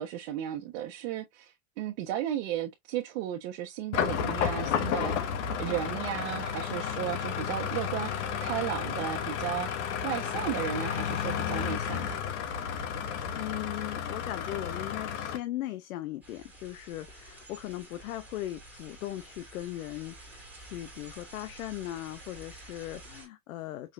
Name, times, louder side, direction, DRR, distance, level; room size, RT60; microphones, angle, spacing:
voice 1, 0.0-9.7 10.0-12.2, right 11 dB, 55° right, 1.2 m, -34 dB
sound 1, 3.9-15.4, left 8 dB, 55° left, 1.2 m, -32 dB
voice 2, 13.3-23.9, left 15 dB, 80° left, 0.8 m, -38 dB
sound 2, 16.2-23.3, right 2 dB, 5° right, 2.1 m, -50 dB
5.6 x 3.2 x 2.5 m
supercardioid pair, 150°, 41 cm